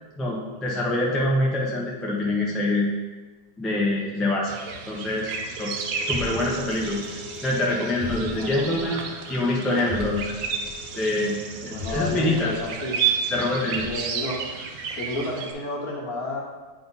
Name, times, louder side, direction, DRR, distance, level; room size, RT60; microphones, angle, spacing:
voice 1, 0.2-2.9 3.6-4.5 4.9-5.7 6.0-7.0 7.4-9.0 9.3-10.3 10.9-11.4 11.6-12.5 13.3-13.9, left 2 dB, ahead, -4 dB, 0.4 m, -25 dB
sound 1, 4.5-15.5, right 6 dB, 65° right, 0.9 m, -32 dB
sound 2, 5.7-14.1, left 3 dB, 20° right, 1.8 m, -39 dB
voice 2, 8.3-8.6 11.7-12.9 13.8-14.4 15.0-16.4, left 1 dB, 55° left, -1 dB, 1.4 m, -31 dB
8.6 x 3.4 x 4.0 m, 1.3 s
omnidirectional pair, 1.9 m